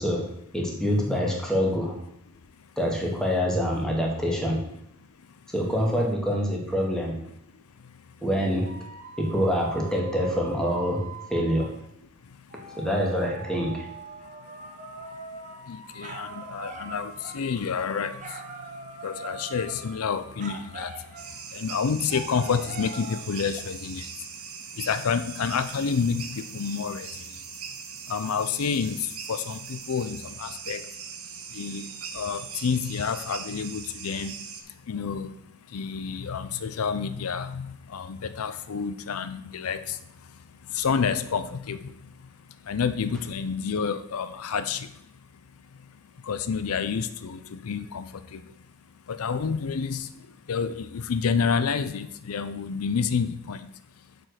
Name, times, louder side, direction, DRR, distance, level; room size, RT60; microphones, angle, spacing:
voice 1, 0.0-2.0 2.8-4.6 5.5-7.2 8.2-8.7 9.2-11.7 12.7-13.9, equal, 5° left, 1.9 m, -26 dB
voice 2, 5.2-5.5 7.5-8.2 12.2-12.8 14.4-45.1 45.6-48.7 49.1-53.7 54.0-54.1, left 6 dB, 80° left, 0.5 m, -30 dB
sound 1, 8.7-11.8 12.5-21.5 22.1-23.2, right 4 dB, 35° right, 1.0 m, -42 dB
sound 2, 21.2-34.6, right 7 dB, 85° right, 1.2 m, -40 dB
7.4 x 5.2 x 6.4 m
head